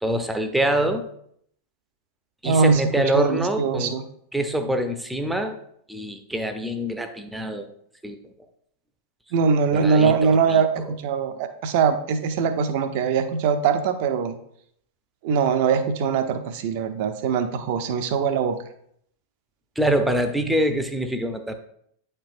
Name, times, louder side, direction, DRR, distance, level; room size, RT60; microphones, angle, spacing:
voice 1, 0.0-1.1 2.4-3.9 4.3-5.6 5.9-7.7 8.0-8.2 9.7-10.6 19.8-21.5, right 1 dB, 5° right, 7 dB, 0.6 m, -25 dB
voice 2, 2.4-2.8 3.1-4.0 9.3-14.4 15.2-18.6, right 6 dB, 50° right, 9 dB, 0.6 m, -22 dB
8.9 x 4.4 x 2.5 m, 0.69 s
figure-of-eight pair, 90°, 0 cm